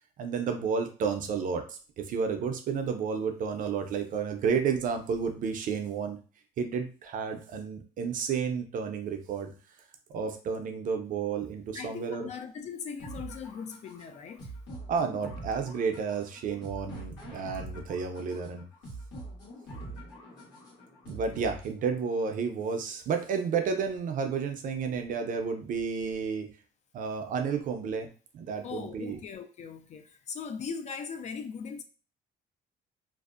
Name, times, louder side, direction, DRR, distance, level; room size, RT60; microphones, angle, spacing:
voice 1, 0.2-6.2 6.6-9.5 10.1-12.3 14.9-18.6 21.1-26.5 26.9-29.2, right 6 dB, 55° right, 0.5 m, -31 dB
voice 2, 11.7-14.5 28.6-31.8, left 6 dB, 45° left, 0.4 m, -39 dB
sound 1, 13.0-22.0, right 2 dB, 90° left, 1.1 m, -44 dB
2.6 x 2.0 x 2.4 m
cardioid pair, 110°, 17 cm